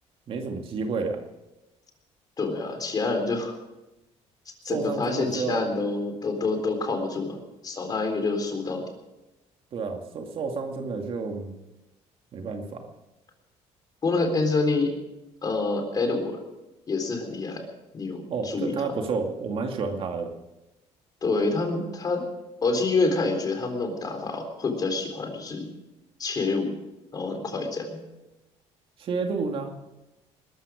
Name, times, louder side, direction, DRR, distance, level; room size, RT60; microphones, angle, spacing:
voice 1, 0.3-1.2 4.7-5.6 9.7-11.5 12.3-12.9 18.3-20.3 29.0-29.7, right 4 dB, 50° right, 4 dB, 2.3 m, -30 dB
voice 2, 2.4-3.6 4.6-7.4 7.6-8.9 14.0-14.9 15.4-16.4 16.9-17.6 17.9-18.9 21.2-22.2 22.6-25.7 26.2-26.7 27.1-28.0, left 3 dB, 30° left, 4 dB, 3.9 m, -27 dB
20.5 x 13.5 x 5.1 m, 0.98 s
cardioid pair, 125°, 12 cm